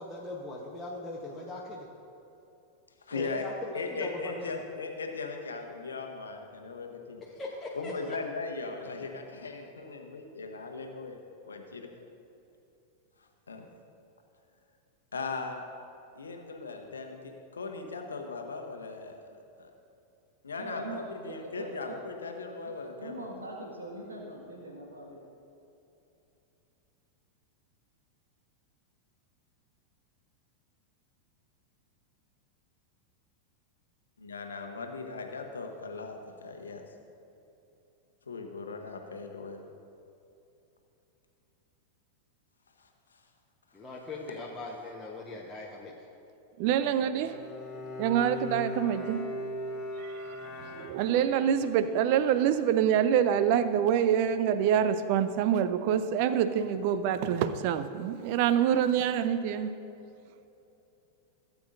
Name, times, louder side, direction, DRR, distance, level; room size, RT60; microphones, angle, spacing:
voice 1, 0.0-1.9 3.1-4.6 7.2-7.9 43.7-45.9, left 2 dB, 10° left, 1.1 m, -40 dB
voice 2, 3.1-3.4 3.7-7.2 7.7-11.2 11.5-11.9 13.5-13.7 15.1-15.6 16.2-19.1 19.6-19.7 20.4-23.2 34.2-36.8 38.3-39.6 42.8-42.9, left 4 dB, 70° left, 1.0 m, -38 dB
voice 3, 20.5-22.0 22.6-22.7 23.0-25.2, right 1 dB, 75° right, 1.9 m, -42 dB
voice 4, 46.6-47.4 48.0-49.5 50.0-59.7, right 9 dB, 45° right, 0.5 m, -26 dB
Bowed string instrument, 47.2-51.5, left 1 dB, 30° left, 1.4 m, -39 dB
17.0 x 8.2 x 2.7 m
figure-of-eight pair, 90°, 0 cm